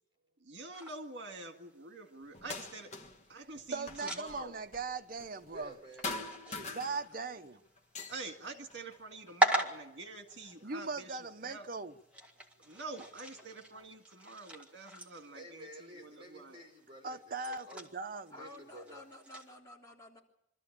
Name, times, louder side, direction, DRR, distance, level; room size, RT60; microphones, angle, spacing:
voice 1, 0.4-2.9 3.3-4.6 8.1-11.7 12.6-15.7 16.0-16.6, right 3 dB, 65° right, 1.9 m, -47 dB
sound 1, 0.7-19.6, right 2 dB, 5° right, 1.9 m, -41 dB
sound 2, 2.3-3.3 3.5-5.8 6.0-7.4 7.8-9.6 10.3-11.2 12.1-12.2 12.9-13.9, left 3 dB, 35° left, 1.5 m, -45 dB
voice 2, 3.7-5.7 6.7-7.6 10.6-11.9 17.0-18.3, right 4 dB, 50° right, 0.8 m, -39 dB
voice 3, 5.5-6.7 15.3-17.8 18.3-19.0, equal, 25° right, 4.9 m, -52 dB
voice 4, 18.3-20.2, left 1 dB, 20° left, 3.3 m, -51 dB
25.0 x 13.5 x 8.6 m
head